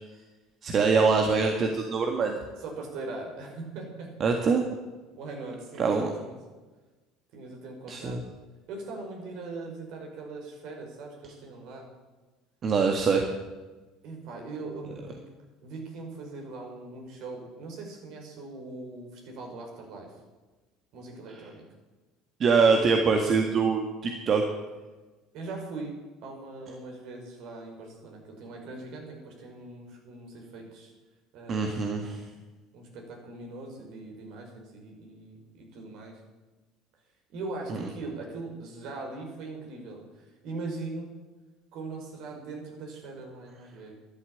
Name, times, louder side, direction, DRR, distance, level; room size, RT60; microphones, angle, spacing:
voice 1, 0.6-2.4 4.2-4.6 5.8-6.1 7.9-8.2 12.6-13.3 22.4-24.4 31.5-32.2, right 5 dB, 45° right, 3 dB, 1.8 m, -24 dB
voice 2, 2.6-4.4 5.1-6.4 7.3-8.2 8.7-11.9 14.0-15.2 15.6-20.2 20.9-21.6 25.3-25.9 26.2-30.9 31.3-31.9 32.7-36.2 37.3-41.1 41.7-43.9, right 3 dB, 65° right, 1 dB, 5.2 m, -40 dB
12.5 x 11.5 x 8.7 m, 1.2 s
hypercardioid pair, 80°, 0 cm